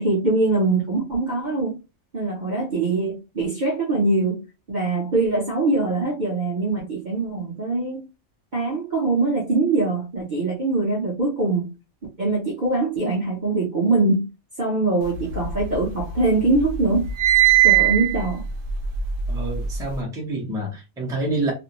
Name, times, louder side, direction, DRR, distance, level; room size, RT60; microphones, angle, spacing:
voice 1, 0.0-1.8 2.1-4.4 4.7-8.0 8.5-11.7 12.2-14.3 14.6-17.1 17.6-18.4, right 3 dB, 45° right, 0.7 m, -23 dB
sound 1, 15.2-16.2 16.5-19.9, right 13 dB, 70° right, 1.0 m, -20 dB
voice 2, 19.3-21.5, right 2 dB, 5° right, 0.5 m, -27 dB
2.6 x 2.1 x 2.8 m
omnidirectional pair, 1.5 m